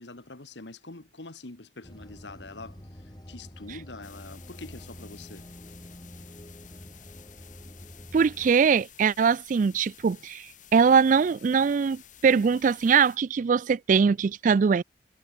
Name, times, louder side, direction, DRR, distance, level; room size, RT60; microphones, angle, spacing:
voice 1, 0.0-5.5, left 2 dB, 80° left, 1.9 m, -44 dB
sound 1, 1.8-8.5, equal, 25° left, 2.9 m, -47 dB
sound 2, 4.0-13.2, left 10 dB, 45° left, 2.2 m, -53 dB
voice 2, 8.1-14.8, right 6 dB, 45° right, 0.3 m, -22 dB
head